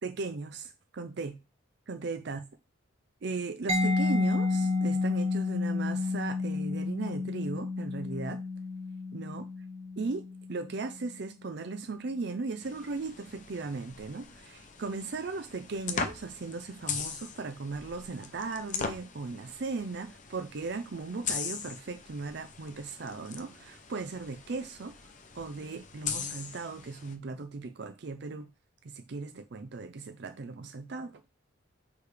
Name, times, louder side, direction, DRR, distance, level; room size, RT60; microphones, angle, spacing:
voice 1, 0.0-1.4 1.9-2.4 3.2-8.4 9.1-9.4 10.0-25.0 25.3-28.5 28.8-31.2, right 3 dB, 55° right, 0.5 m, -37 dB
Mallet percussion, 3.7-11.2, left 3 dB, 30° right, 1.0 m, -31 dB
metall clip, 12.6-27.1, left 6 dB, 35° left, 0.7 m, -40 dB
6.6 x 4.9 x 3.3 m
head